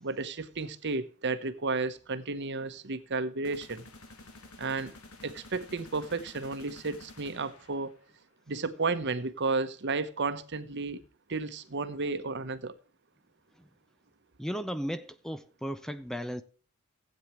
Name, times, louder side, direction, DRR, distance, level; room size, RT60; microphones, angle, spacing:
voice 1, 0.0-3.8 4.6-4.9 5.2-8.0 8.5-11.0 11.3-12.7, right 3 dB, 55° right, 1.0 m, -32 dB
sound 1, 3.4-8.2, left 2 dB, 90° left, 2.1 m, -51 dB
voice 2, 14.4-16.4, equal, ahead, 0.5 m, -35 dB
16.0 x 8.8 x 3.1 m
head